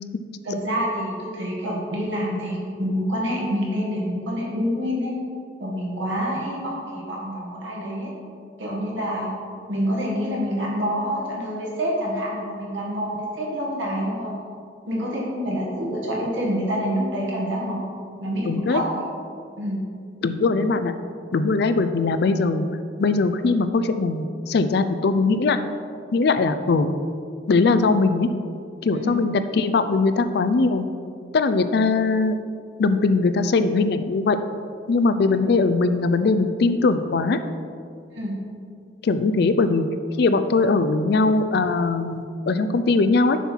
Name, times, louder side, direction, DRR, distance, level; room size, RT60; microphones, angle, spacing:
voice 1, 0.4-5.2 5.6-8.1 8.6-9.3 9.7-14.3 14.9-17.9 18.2-19.0 19.6-19.9 28.9-29.1 38.1-38.4, equal, 90° right, -3 dB, 1.9 m, -27 dB
voice 2, 18.4-18.8 20.2-20.9 21.3-22.7 23.0-25.6 26.1-26.9 27.5-28.3 28.8-30.9 31.3-32.4 32.8-34.4 34.9-37.4 39.0-39.8 40.2-43.4, left 3 dB, 60° left, 10 dB, 0.4 m, -20 dB
7.1 x 5.7 x 4.5 m, 2.3 s
head